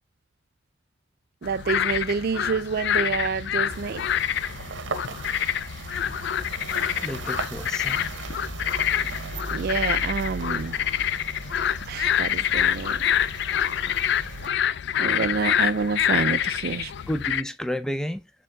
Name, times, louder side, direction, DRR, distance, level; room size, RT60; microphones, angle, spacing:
sound 1, 1.4-17.4, left 10 dB, 65° left, 0.3 m, -26 dB
voice 1, 1.4-4.0 9.5-10.8 11.9-13.0 15.0-16.9, right 5 dB, 55° right, 0.4 m, -28 dB
sound 2, 3.7-14.5, right 4 dB, 85° right, 0.8 m, -37 dB
voice 2, 7.0-8.1 17.1-18.3, equal, 5° left, 0.5 m, -31 dB
6.8 x 3.7 x 4.7 m
head